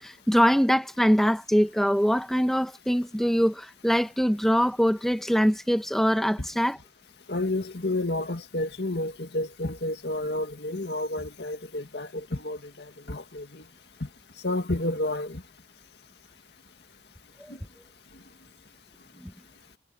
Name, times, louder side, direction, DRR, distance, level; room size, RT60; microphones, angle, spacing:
voice 1, 0.0-6.8 17.4-17.5 19.2-19.3, equal, ahead, 1.1 m, -23 dB
voice 2, 7.3-13.6 14.0-14.1 14.4-15.4, left 2 dB, 65° left, 2.1 m, -30 dB
head